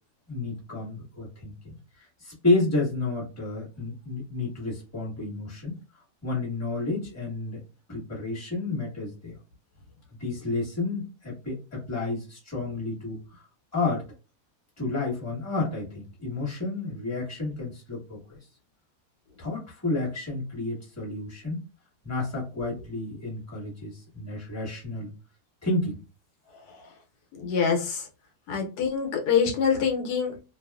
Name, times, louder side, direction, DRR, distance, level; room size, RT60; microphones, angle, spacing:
voice 1, 0.3-5.7 6.2-7.6 7.9-9.4 10.2-13.4 13.7-14.1 14.8-18.4 19.4-21.6 22.0-25.1 25.6-26.0, left 2 dB, 10° left, -4 dB, 1.1 m, -31 dB
voice 2, 27.3-28.1 28.5-30.4, left 6 dB, 80° left, 3 dB, 1.2 m, -25 dB
2.7 x 2.3 x 2.3 m, 0.30 s
omnidirectional pair, 1.7 m